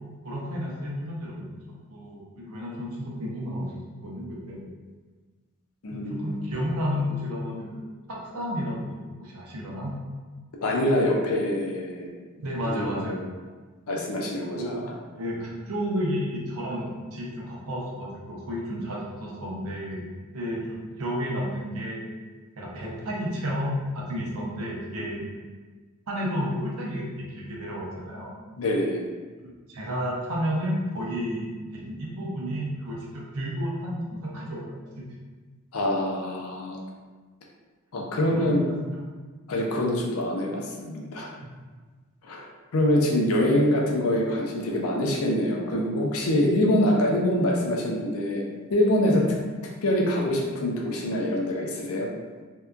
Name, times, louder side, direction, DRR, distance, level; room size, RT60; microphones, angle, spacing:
voice 1, 0.2-1.5 1.9-3.7 4.0-4.7 5.9-7.8 8.1-10.0 12.4-13.2 14.5-14.9 15.2-20.0 20.3-22.0 22.6-25.3 26.1-28.3 29.7-35.1 38.3-38.8 49.1-49.3, equal, 75° right, -3 dB, 0.6 m, -31 dB
voice 2, 5.8-6.4 10.6-12.1 12.6-13.3 13.9-14.8 25.0-25.1 28.6-29.0 35.7-36.8 37.9-38.6 39.5-41.3 42.2-42.4 42.7-48.4 48.7-49.2 49.8-52.1, left 1 dB, 70° left, -1 dB, 0.5 m, -25 dB
2.7 x 2.2 x 2.3 m, 1.4 s
head